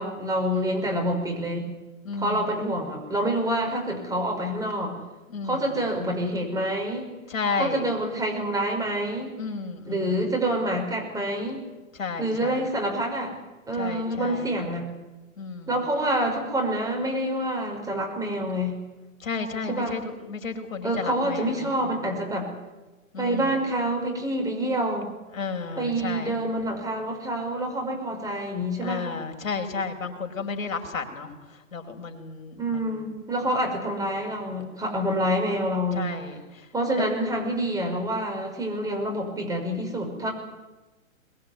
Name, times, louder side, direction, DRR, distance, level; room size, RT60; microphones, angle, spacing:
voice 1, 0.0-1.7 2.2-4.9 5.4-7.1 7.6-9.3 9.8-11.6 12.2-13.4 13.7-14.9 15.7-18.8 19.7-20.0 20.8-22.5 23.2-25.1 25.8-29.1 32.6-36.1 36.7-40.3, right 1 dB, 10° right, 2 dB, 5.7 m, -27 dB
voice 2, 0.5-0.9 2.0-2.6 5.3-5.7 7.3-7.8 9.4-10.2 12.0-12.6 13.8-14.5 15.4-15.7 19.2-20.0 20.3-21.6 21.8-21.9 23.1-23.6 25.3-26.3 28.8-31.3 31.7-32.8 35.9-36.4 37.0-37.1, left 4 dB, 75° left, 5 dB, 4.9 m, -32 dB
22.0 x 21.5 x 9.6 m, 1.1 s
hypercardioid pair, 130°, 40 cm